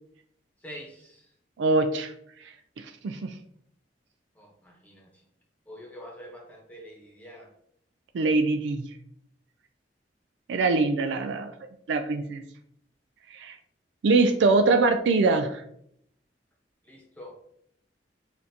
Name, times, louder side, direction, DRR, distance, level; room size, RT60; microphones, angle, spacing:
voice 1, 0.6-1.3 4.3-5.2 5.7-7.5 16.8-17.4, equal, 10° left, -2 dB, 1.0 m, -46 dB
voice 2, 1.6-2.1 2.8-3.3 8.1-8.9 10.5-11.5 11.9-12.4 13.3-13.5 14.0-15.6, right 3 dB, 90° right, 7 dB, 0.3 m, -23 dB
6.2 x 2.5 x 2.8 m, 0.71 s
head